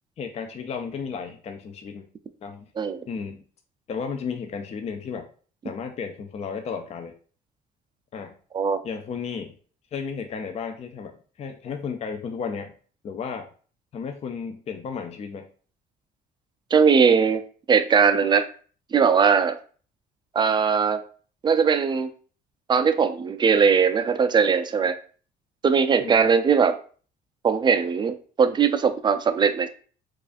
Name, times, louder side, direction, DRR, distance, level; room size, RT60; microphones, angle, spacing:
voice 1, 0.2-2.1 2.4-2.6 3.1-3.4 3.9-5.3 5.6-7.1 8.1-8.3 8.8-9.5 9.9-12.7 13.0-13.5 13.9-15.5 26.0-26.3, left 6 dB, 40° left, 5 dB, 0.5 m, -33 dB
voice 2, 16.7-17.4 17.7-18.5 18.9-19.6 20.3-21.0 21.4-22.1 22.7-25.0 25.6-26.7 27.4-29.7, right 6 dB, 25° right, 10 dB, 0.4 m, -20 dB
4.7 x 2.4 x 2.5 m, 0.41 s
cardioid pair, 110°, 17 cm